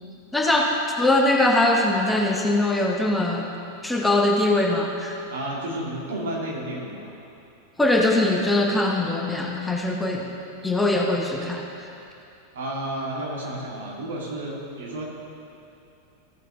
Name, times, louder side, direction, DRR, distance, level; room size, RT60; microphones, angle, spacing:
voice 1, 0.3-3.5 3.8-5.2 7.8-10.4 10.6-11.9, left 2 dB, 5° left, 0 dB, 0.8 m, -22 dB
voice 2, 5.3-7.1 12.5-15.0, right 1 dB, 60° right, -3 dB, 2.1 m, -31 dB
15.5 x 6.7 x 3.6 m, 2.7 s
figure-of-eight pair, 90°, 0 cm